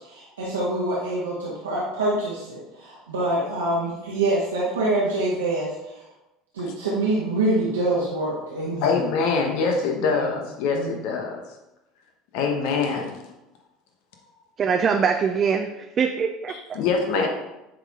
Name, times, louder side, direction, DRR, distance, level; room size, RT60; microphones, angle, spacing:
voice 1, 0.0-6.0 6.5-8.9 10.0-10.3 10.7-11.0, right 2 dB, 85° right, -7 dB, 1.4 m, -26 dB
voice 2, 8.8-11.4 12.3-13.2 16.5-17.3, left 4 dB, 65° left, 2 dB, 1.1 m, -24 dB
voice 3, 14.6-15.7 16.0-16.5, right 6 dB, 40° right, 4 dB, 0.5 m, -22 dB
10.0 x 4.0 x 3.6 m, 0.97 s
hypercardioid pair, 70°, 0 cm